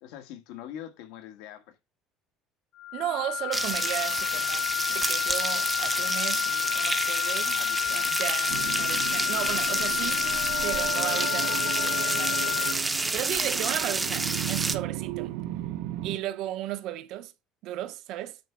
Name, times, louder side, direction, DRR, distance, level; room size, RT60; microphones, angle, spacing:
voice 1, 0.0-1.8 7.4-8.2, left 10 dB, 85° left, 1.6 m, -43 dB
sound 1, 2.8-12.7, left 16 dB, 50° left, 0.8 m, -30 dB
voice 2, 2.9-10.3 10.6-15.3 16.0-17.3 17.6-18.4, right 13 dB, 55° right, 0.7 m, -35 dB
sound 2, 3.5-14.8, right 3 dB, 10° right, 0.6 m, -29 dB
sound 3, 8.5-16.2, right 14 dB, 75° right, 1.0 m, -35 dB
8.9 x 3.4 x 5.8 m
cardioid pair, 175°, 0 cm